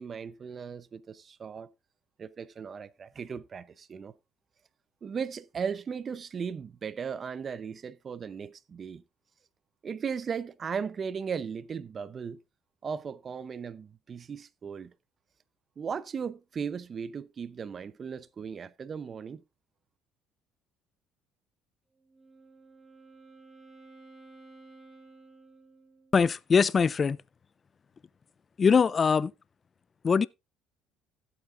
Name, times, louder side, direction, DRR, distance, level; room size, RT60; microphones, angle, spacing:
voice 1, 0.0-1.7 2.2-4.1 5.0-9.0 9.8-12.4 12.8-14.9 15.8-19.4, right 6 dB, 40° right, 0.7 m, -37 dB
Wind instrument woodwind instrument, 21.9-26.3, right 3 dB, 20° right, 4.4 m, -54 dB
voice 2, 26.1-27.2 28.6-29.3 30.0-30.3, left 5 dB, 35° left, 0.4 m, -22 dB
15.5 x 8.2 x 2.5 m
supercardioid pair, 90°, 0 cm